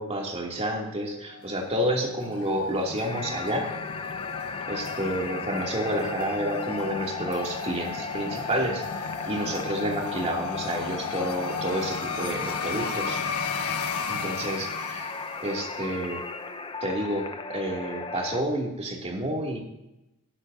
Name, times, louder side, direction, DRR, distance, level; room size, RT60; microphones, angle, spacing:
voice 1, 0.0-3.7 4.7-13.2 14.1-15.1 15.4-16.2 16.8-19.6, right 1 dB, 30° right, -1 dB, 2.8 m, -30 dB
sound 1, 1.3-16.0, left 5 dB, 85° left, 1.3 m, -35 dB
sound 2, 3.0-18.4, left 4 dB, 25° left, 0.7 m, -36 dB
19.0 x 10.5 x 2.8 m, 0.93 s
head